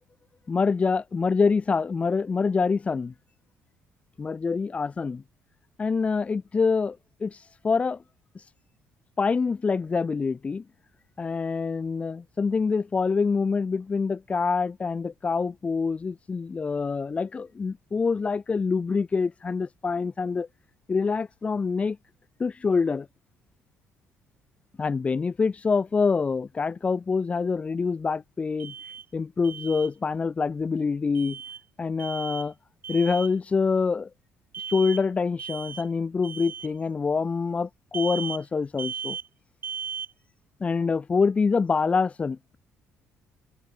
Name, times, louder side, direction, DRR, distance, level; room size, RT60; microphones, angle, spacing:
voice 1, 0.5-3.1 4.2-5.2 5.8-7.4 7.6-8.0 9.2-10.6 11.2-20.5 20.9-22.0 22.4-23.1 24.8-28.7 29.1-31.4 31.8-32.5 32.9-34.1 34.7-39.2 40.6-42.6, left 4 dB, 25° left, 0.7 m, -26 dB
Alarm, 28.6-29.1 29.4-29.9 31.2-31.6 32.0-32.5 32.8-33.3 34.5-35.0 35.4-35.9 36.2-36.7 37.9-38.4 38.8-39.3 39.6-40.1, right 7 dB, 40° right, 4.4 m, -36 dB
cardioid pair, 105°, 5 cm